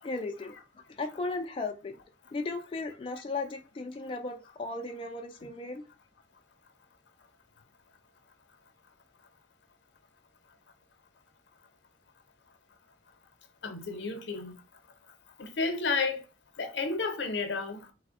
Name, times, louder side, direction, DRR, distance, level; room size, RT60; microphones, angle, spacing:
voice 1, 0.0-1.9 2.3-5.8, left 3 dB, 30° left, 0.3 m, -36 dB
voice 2, 13.6-14.5 15.4-16.2 16.6-17.8, left 4 dB, 75° left, 0.6 m, -31 dB
3.3 x 2.1 x 3.5 m
head